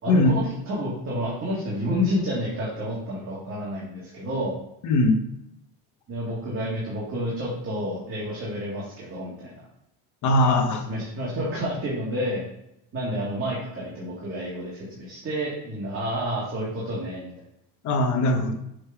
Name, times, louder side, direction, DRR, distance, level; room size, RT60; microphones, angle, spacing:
voice 1, 0.0-4.6 6.1-9.6 10.9-12.5 12.9-17.3, equal, 30° right, -6 dB, 2.0 m, -29 dB
voice 2, 4.8-5.2 10.2-10.8 17.8-18.5, left 1 dB, 45° left, 5 dB, 0.9 m, -20 dB
7.6 x 4.0 x 4.6 m, 0.81 s
cardioid pair, 155°, 40 cm